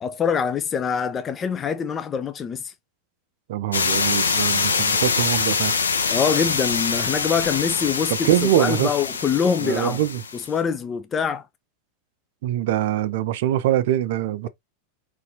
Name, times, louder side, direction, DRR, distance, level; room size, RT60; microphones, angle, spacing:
voice 1, 0.0-2.7 6.1-10.0 10.3-11.5, left 6 dB, 25° left, 0.4 m, -24 dB
voice 2, 3.5-5.7 8.1-8.9 9.6-10.2 12.4-14.5, right 12 dB, 60° right, 0.4 m, -23 dB
sound 1, 3.7-10.5, left 5 dB, 80° left, 0.6 m, -24 dB
4.0 x 2.5 x 2.7 m
figure-of-eight pair, 90°, 0 cm